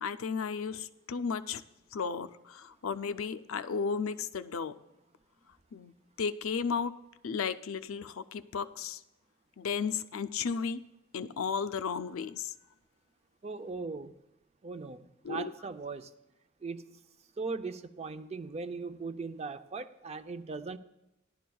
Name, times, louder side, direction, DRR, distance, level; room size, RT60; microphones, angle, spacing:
voice 1, 0.0-1.6 1.9-4.8 5.7-5.9 6.2-6.9 7.2-9.0 9.6-10.8 11.1-12.5 15.2-15.5, left 6 dB, 85° left, 12 dB, 0.5 m, -34 dB
voice 2, 13.4-14.1 14.6-16.1 16.6-17.0 17.4-20.8, right 4 dB, 30° right, 10 dB, 0.5 m, -39 dB
16.5 x 11.5 x 2.3 m, 0.92 s
head